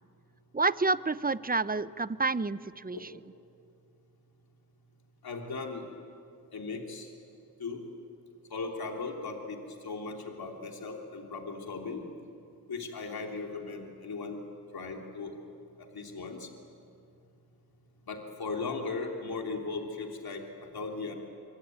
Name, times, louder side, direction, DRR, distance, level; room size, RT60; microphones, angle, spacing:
voice 1, 0.5-3.1, right 3 dB, 20° right, 16 dB, 0.8 m, -29 dB
voice 2, 5.2-5.8 6.5-7.1 7.6-7.8 8.5-12.0 12.7-14.4 14.7-15.3 15.9-16.5 18.1-20.4 20.7-21.1, left 4 dB, 65° left, 1 dB, 3.3 m, -37 dB
25.0 x 25.0 x 9.4 m, 2.4 s
cardioid pair, 55°, 39 cm